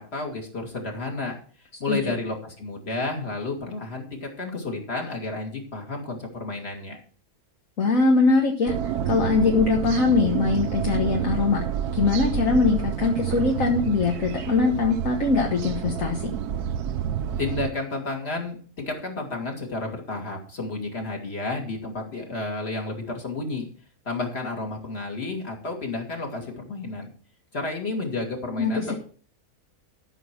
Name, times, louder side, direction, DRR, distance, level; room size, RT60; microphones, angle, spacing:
voice 1, 0.0-1.4 1.8-7.0 17.4-23.7 24.0-27.1 27.5-28.8, left 2 dB, 40° left, 2 dB, 2.8 m, -31 dB
voice 2, 7.8-8.7 9.1-11.6 11.9-16.3 28.6-28.9, left 4 dB, 60° left, 1 dB, 1.8 m, -22 dB
sound 1, 8.7-17.7, right 9 dB, 90° right, 1.2 m, -29 dB
13.5 x 6.4 x 6.1 m, 0.43 s
omnidirectional pair, 1.6 m